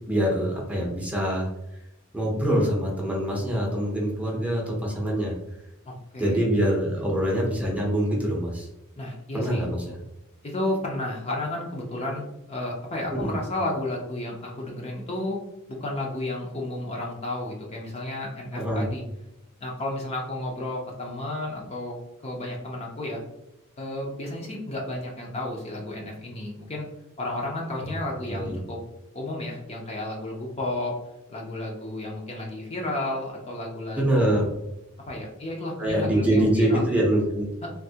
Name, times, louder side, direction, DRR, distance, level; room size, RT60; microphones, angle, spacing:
voice 1, 0.0-1.5 2.1-5.3 6.2-8.7 9.3-9.8 13.1-13.4 18.5-18.9 28.3-28.7 34.0-34.5 35.8-37.7, right 1 dB, 5° right, -3 dB, 0.7 m, -24 dB
voice 2, 5.9-6.4 9.0-9.6 10.4-15.4 15.7-19.0 19.6-22.0 22.2-23.2 23.8-26.9 27.2-28.8 29.1-31.0 31.3-34.4 35.1-36.8 37.6-37.7, left 1 dB, 30° left, -1 dB, 0.5 m, -32 dB
3.5 x 2.5 x 2.7 m, 0.88 s
head